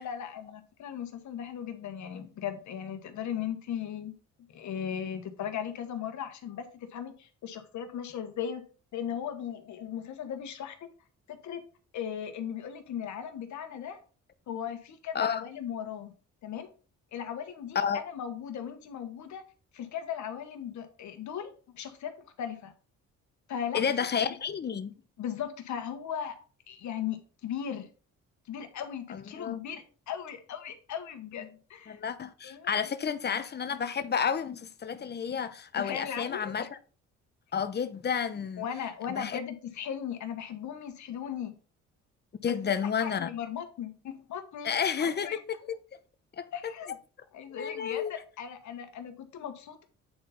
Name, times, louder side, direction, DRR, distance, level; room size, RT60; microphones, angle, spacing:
voice 1, 0.0-4.1 4.5-8.6 8.9-10.9 11.3-11.6 11.9-14.0 14.5-16.1 16.4-16.7 17.1-19.4 19.7-22.1 22.4-22.7 23.5-23.8 24.2-24.3 25.2-26.4 26.7-27.9 28.5-32.0 32.4-33.1 35.8-36.5 38.6-41.5 42.5-42.8 43.0-44.7 45.0-45.4 46.5-46.9 47.3-49.8, left 8 dB, 70° left, 1.4 m, -37 dB
voice 2, 23.7-24.9 29.1-29.6 31.9-36.8 37.5-38.7 39.1-39.4 42.4-43.3 44.6-45.6 46.4-46.5 47.5-48.1, left 7 dB, 35° left, 0.8 m, -31 dB
8.5 x 4.2 x 4.1 m
cardioid pair, 90°, 30 cm